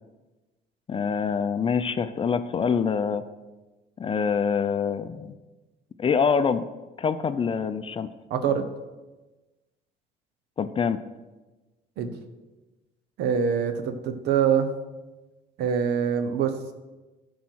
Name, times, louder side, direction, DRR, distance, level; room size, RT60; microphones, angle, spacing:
voice 1, 0.9-3.2 4.0-5.3 6.0-6.6 7.0-8.1 10.6-11.0, left 6 dB, 30° left, 11 dB, 0.6 m, -25 dB
voice 2, 8.3-8.7 12.0-12.1 13.2-14.7 15.6-16.5, right 7 dB, 75° right, 9 dB, 1.0 m, -24 dB
11.5 x 4.7 x 6.3 m, 1.2 s
cardioid pair, 110°, 17 cm